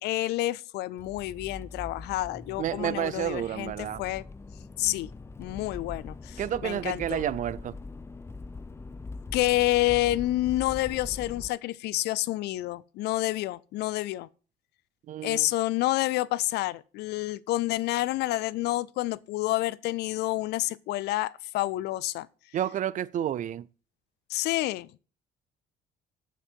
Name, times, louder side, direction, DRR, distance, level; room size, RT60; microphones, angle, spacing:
voice 1, 0.0-4.2 4.8-5.1 5.4-7.2 9.3-14.3 15.2-22.3 24.3-24.9, left 17 dB, 80° left, 0.5 m, -29 dB
Accelerating revving vroom, 1.0-11.5, left 3 dB, 15° left, 0.5 m, -42 dB
voice 2, 2.6-4.0 6.4-7.7 15.1-15.5 22.5-23.7, right 11 dB, 50° right, 0.5 m, -30 dB
14.0 x 6.0 x 4.6 m
cardioid pair, 110°, 17 cm